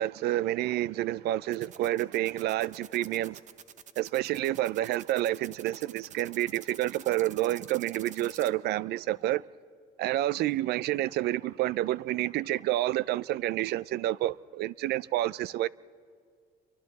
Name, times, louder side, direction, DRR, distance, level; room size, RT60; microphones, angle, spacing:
voice 1, 0.0-3.4 4.0-9.4 10.0-15.7, right 15 dB, 75° right, 0.4 m, -29 dB
sound 1, 1.5-8.5, right 8 dB, 45° right, 0.8 m, -48 dB
28.5 x 24.0 x 4.1 m
cardioid pair, 110°, 17 cm